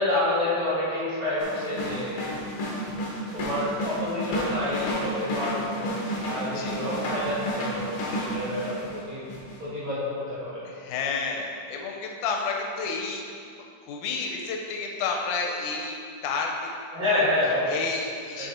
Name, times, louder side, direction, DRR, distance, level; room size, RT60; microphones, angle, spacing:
voice 1, 0.0-2.2 3.3-5.9 6.3-9.2 9.6-10.6 16.9-17.7 18.4-18.5, left 1 dB, 45° right, -10 dB, 2.1 m, -28 dB
sound 1, 1.4-9.0 9.3-9.6, equal, 60° left, 1.7 m, -31 dB
voice 2, 6.4-6.8 10.7-13.2 13.6-16.7 17.0-17.2 17.7-18.5, left 4 dB, 80° left, 1 dB, 2.1 m, -31 dB
6.4 x 5.6 x 4.3 m, 2.4 s
omnidirectional pair, 3.6 m